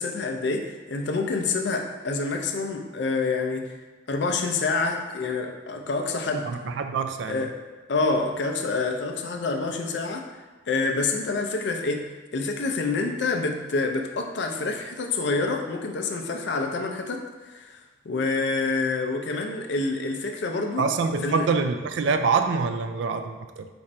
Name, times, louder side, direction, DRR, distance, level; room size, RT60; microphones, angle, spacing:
voice 1, 0.0-3.7 4.1-6.6 7.3-7.5 7.9-10.3 10.7-20.8 21.2-21.5, left 3 dB, 65° left, 3 dB, 0.4 m, -27 dB
voice 2, 6.4-7.5 20.8-23.7, right 5 dB, 70° right, 8 dB, 0.3 m, -25 dB
4.3 x 2.5 x 4.3 m, 1.3 s
head